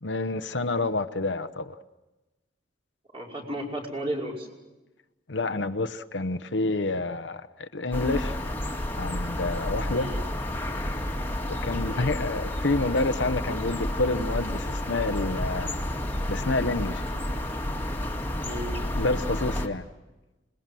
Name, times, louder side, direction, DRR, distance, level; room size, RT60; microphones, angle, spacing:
voice 1, 0.0-1.7 5.3-8.4 9.0-10.1 11.5-15.7 16.3-17.0 18.9-19.8, left 2 dB, 65° left, 10 dB, 0.9 m, -28 dB
voice 2, 3.1-4.5 9.9-10.2 11.9-12.2 18.4-18.8, right 1 dB, 30° right, -1 dB, 5.6 m, -34 dB
sound 1, 7.9-19.7, left 1 dB, 10° left, 2.1 m, -30 dB
26.5 x 21.0 x 7.7 m, 1.1 s
head